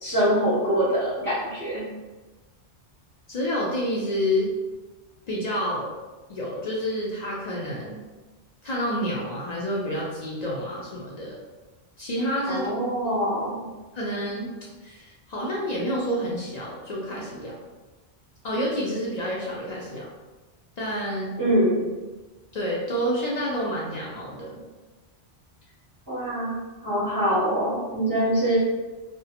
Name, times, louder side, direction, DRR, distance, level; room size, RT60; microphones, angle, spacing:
voice 1, 0.0-1.8 12.5-13.6 21.4-21.9 26.1-28.6, equal, 25° right, -9 dB, 0.5 m, -24 dB
voice 2, 3.3-4.5 5.3-5.9 6.3-8.0 8.6-11.4 12.0-12.7 13.0-13.2 13.9-14.5 14.8-17.5 18.4-20.1 20.8-21.4 22.5-24.6, equal, 60° left, -5 dB, 0.4 m, -29 dB
2.3 x 2.1 x 2.8 m, 1.2 s
omnidirectional pair, 1.1 m